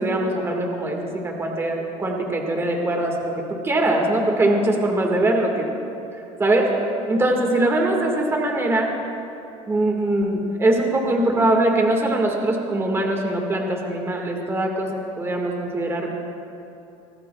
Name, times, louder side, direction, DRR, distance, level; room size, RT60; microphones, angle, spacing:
voice 1, 0.0-5.7 6.4-6.7 7.1-8.9 9.7-16.1, right 1 dB, 20° right, 1 dB, 1.7 m, -22 dB
24.0 x 17.5 x 2.3 m, 2.8 s
cardioid pair, 135°, 14 cm